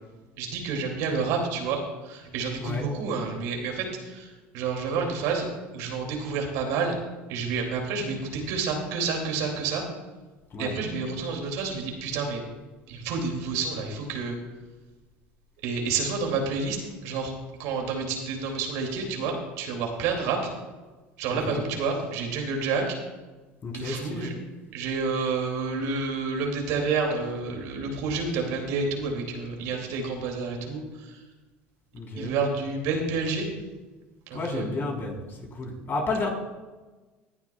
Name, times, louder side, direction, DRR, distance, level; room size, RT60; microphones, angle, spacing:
voice 1, 0.4-1.8 2.0-4.3 4.5-5.5 5.7-6.9 7.3-9.8 10.6-12.4 12.9-14.3 15.6-16.8 17.0-17.3 17.6-20.4 21.2-22.9 23.7-24.3 24.7-31.1 32.2-33.4 34.3-34.6, right 4 dB, 70° right, 1 dB, 2.5 m, -29 dB
voice 2, 21.3-21.6 23.6-24.3 31.9-32.3 34.3-36.3, left 3 dB, 40° left, 0 dB, 3.6 m, -31 dB
18.0 x 11.0 x 2.3 m, 1.2 s
hypercardioid pair, 85°, 6 cm